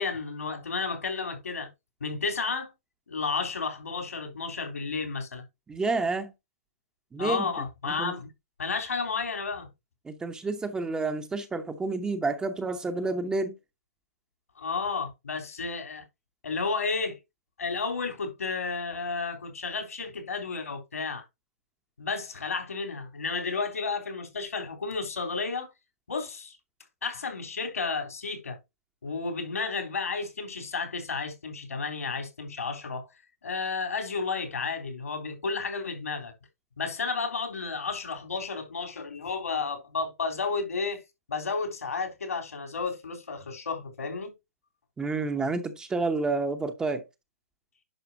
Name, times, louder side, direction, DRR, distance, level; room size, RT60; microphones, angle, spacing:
voice 1, 0.0-1.7 2.0-2.7 3.1-5.4 7.2-8.3 8.6-9.7 14.6-16.0 16.4-17.2 17.6-21.2 22.0-25.7 26.1-26.6 27.0-28.6 29.0-33.1 33.4-36.3 36.8-41.0 41.3-44.3, left 4 dB, 80° left, 3.5 m, -32 dB
voice 2, 5.7-6.3 7.1-7.5 7.9-8.1 10.0-13.5 45.0-47.0, right 3 dB, 10° right, 0.8 m, -29 dB
10.5 x 5.4 x 2.7 m
hypercardioid pair, 130°, 8 cm